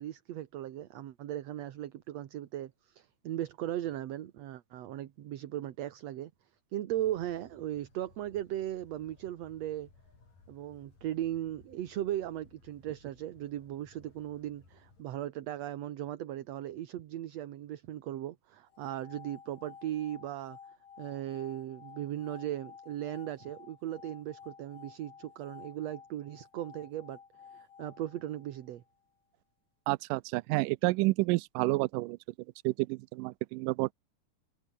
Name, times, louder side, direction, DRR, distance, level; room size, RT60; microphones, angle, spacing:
voice 1, 0.0-6.3 6.7-9.9 10.5-20.6 21.0-27.2 27.5-28.8, right 12 dB, 60° right, 2.1 m, -37 dB
sound 1, 6.9-15.0, left 4 dB, 80° left, 8.5 m, -62 dB
sound 2, 18.7-28.8, left 7 dB, 60° left, 4.2 m, -53 dB
voice 2, 29.9-32.2 32.6-33.9, right 22 dB, 90° right, 2.2 m, -29 dB
omnidirectional pair, 3.7 m